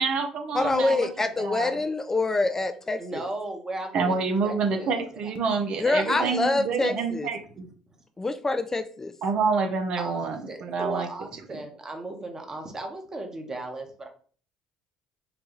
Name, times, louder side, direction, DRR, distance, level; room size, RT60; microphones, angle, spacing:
voice 1, 0.0-1.1 1.4-1.7 3.9-7.7 9.2-11.1, right 5 dB, 60° right, 5 dB, 0.6 m, -27 dB
voice 2, 0.5-3.0 5.8-7.3 8.2-9.1, left 2 dB, 20° left, 8 dB, 0.3 m, -25 dB
voice 3, 3.0-5.3 5.9-6.5 7.6-7.7 10.0-14.1, right 2 dB, 30° right, 4 dB, 1.0 m, -37 dB
3.9 x 2.3 x 3.0 m, 0.43 s
hypercardioid pair, 60°, 2 cm